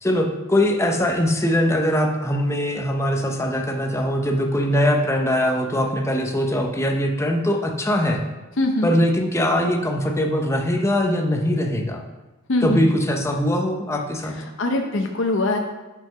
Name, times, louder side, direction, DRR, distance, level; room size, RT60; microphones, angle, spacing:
voice 1, 0.0-8.2 8.8-12.0 12.6-14.4, left 1 dB, 15° left, 2 dB, 0.7 m, -21 dB
voice 2, 8.6-8.9 12.5-12.8 14.6-15.6, left 2 dB, 70° left, 3 dB, 0.7 m, -22 dB
5.9 x 5.5 x 5.7 m, 1.2 s
head